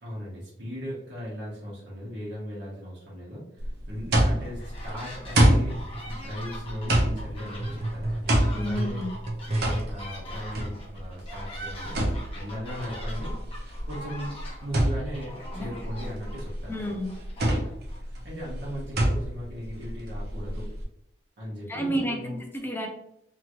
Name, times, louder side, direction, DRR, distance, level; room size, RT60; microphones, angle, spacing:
voice 1, 0.0-9.0 9.5-12.0 12.3-13.3 13.9-14.3 14.6-16.8 17.5-20.7 21.4-22.4, equal, 85° right, -7 dB, 1.1 m, -37 dB
sound 1, 3.6-20.8, right 1 dB, 65° right, 0.8 m, -27 dB
sound 2, 4.4-5.4 5.7-18.0, equal, 35° left, 0.9 m, -43 dB
sound 3, 5.6-10.0 10.8-10.9, right 1 dB, 40° right, 0.5 m, -35 dB
voice 2, 8.6-9.1 15.5-15.7 16.7-17.1 21.7-22.9, equal, 10° left, 1 dB, 0.5 m, -30 dB
2.9 x 2.5 x 2.9 m, 0.75 s
head